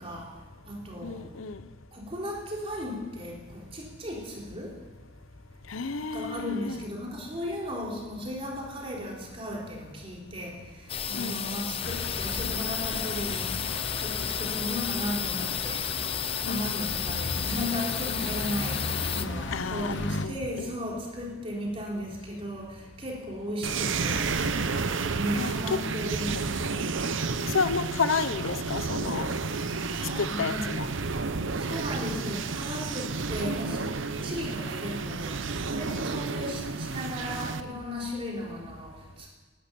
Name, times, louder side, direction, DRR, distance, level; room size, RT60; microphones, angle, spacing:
voice 1, 0.0-1.3 1.9-4.8 6.1-24.3 25.1-26.9 29.6-30.7 31.5-33.9 34.2-39.3, equal, 30° right, -2 dB, 3.7 m, -36 dB
voice 2, 1.0-1.6 5.7-6.8 11.2-11.4 16.5-16.9 19.5-20.0 20.2-20.7 25.4-25.5 27.4-29.3 30.2-30.9 36.1-36.5, left 4 dB, 80° left, 13 dB, 0.8 m, -31 dB
sound 1, 10.9-19.3, left 8 dB, 30° left, 0.5 m, -32 dB
sound 2, 11.8-20.3, left 2 dB, 60° left, 1.0 m, -36 dB
sound 3, 23.6-37.6, right 4 dB, 70° right, 0.8 m, -31 dB
18.0 x 11.5 x 7.0 m, 1.3 s
head